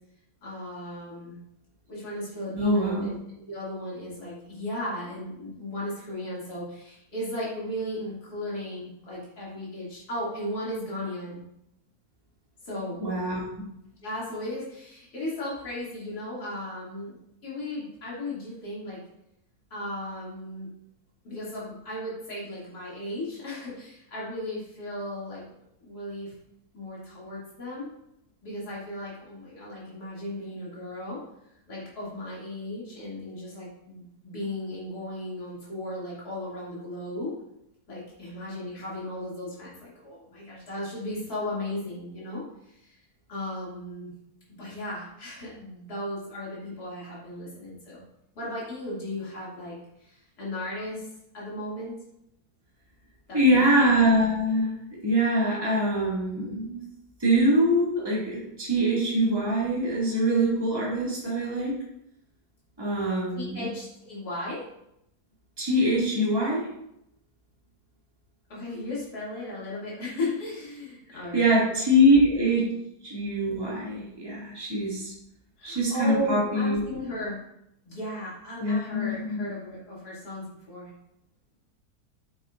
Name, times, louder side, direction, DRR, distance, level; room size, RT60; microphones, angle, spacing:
voice 1, 0.4-1.4 1.9-11.4 12.6-13.0 14.0-17.2 17.4-19.0 19.7-20.7 21.2-26.3 26.7-27.9 28.4-31.2 31.7-37.3 37.9-43.0 43.3-44.1 44.5-48.0 48.3-51.1 51.3-51.9 53.3-53.9 63.3-64.6 68.5-71.5 75.6-77.4 77.8-80.9, left 1 dB, 80° left, -7 dB, 3.2 m, -36 dB
voice 2, 2.5-3.1 13.0-13.4 53.3-54.7 55.0-56.8 57.2-61.8 62.8-63.7 65.6-66.7 71.1-72.7 73.0-75.1 75.6-76.8 78.6-79.4, equal, 15° right, -7 dB, 2.2 m, -24 dB
8.5 x 8.3 x 2.6 m, 0.79 s
omnidirectional pair, 1.6 m